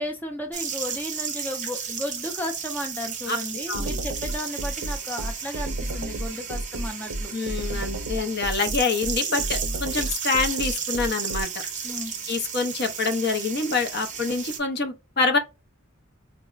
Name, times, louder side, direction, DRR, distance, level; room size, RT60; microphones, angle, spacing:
voice 1, 0.0-7.3 11.8-12.1, left 1 dB, 10° left, 0.4 m, -34 dB
sound 1, 0.5-14.6, right 7 dB, 35° right, 0.7 m, -33 dB
sound 2, 3.7-11.4, right 1 dB, 70° right, 0.5 m, -31 dB
voice 2, 7.3-11.5 12.3-15.4, left 4 dB, 50° left, 0.6 m, -26 dB
4.6 x 2.0 x 2.4 m
head